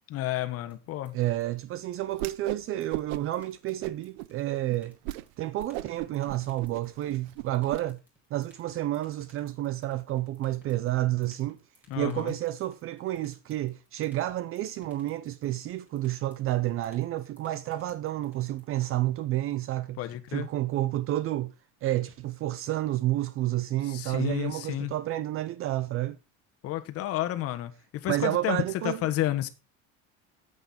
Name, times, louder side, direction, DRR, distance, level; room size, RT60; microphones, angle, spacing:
voice 1, 0.1-1.1 11.9-12.3 20.0-20.5 23.9-24.9 26.6-27.7 28.0-28.6 28.8-29.5, left 14 dB, 50° left, 1.3 m, -31 dB
sound 1, 0.7-18.6, equal, 5° right, 4.8 m, -59 dB
voice 2, 1.1-4.9 5.4-8.0 8.3-11.6 12.0-20.0 20.3-21.5 21.8-26.2 28.1-29.0, right 15 dB, 45° right, 0.6 m, -30 dB
Whoosh swoosh swish, 2.1-2.6 2.9-3.4 3.8-4.3 4.7-4.8 5.0-5.2 5.6-7.8, right 17 dB, 90° right, 0.6 m, -37 dB
9.0 x 8.2 x 4.3 m
cardioid pair, 145°, 31 cm